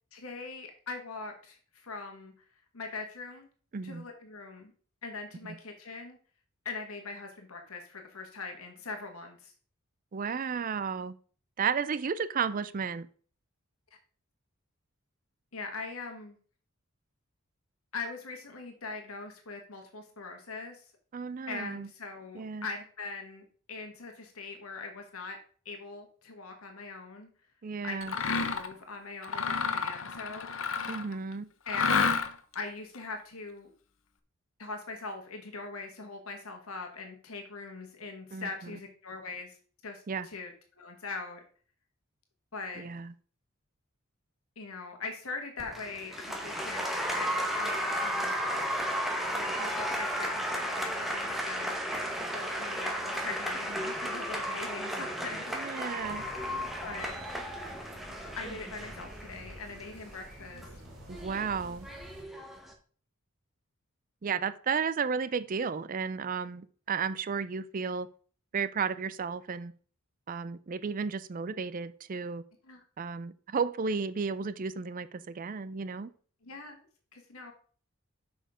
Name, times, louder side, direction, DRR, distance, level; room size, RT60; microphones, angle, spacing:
voice 1, 0.1-2.4 2.7-3.5 3.8-4.7 5.0-6.2 6.6-9.5 15.5-16.4 17.9-20.8 21.5-25.4 25.6-27.3 27.8-30.5 31.6-31.9 32.5-33.7 34.6-39.6 39.8-40.5 40.8-41.4 42.5-42.8 44.6-48.3 49.3-51.8 52.3-56.0 56.8-57.1 58.3-60.8 72.6-72.8 76.4-76.9 77.1-77.5, left 4 dB, 80° left, 4 dB, 1.5 m, -41 dB
voice 2, 3.7-4.1 10.1-11.2 11.6-13.1 21.1-21.9 22.3-22.7 27.6-28.1 30.9-31.5 38.3-38.5 40.1-40.3 42.8-43.1 55.5-56.2 61.1-61.9 64.2-68.1 68.5-69.7 70.3-72.4 73.0-76.1, right 5 dB, 40° right, 15 dB, 0.4 m, -33 dB
Mechanisms, 28.0-28.7 29.2-31.1 31.7-32.5, left 5 dB, 65° left, 0.8 m, -30 dB
Applause, 45.6-62.7, equal, ahead, 1.2 m, -34 dB
sound 1, 56.0-62.2, right 1 dB, 70° right, 2.1 m, -50 dB
6.5 x 5.6 x 5.0 m, 0.44 s
head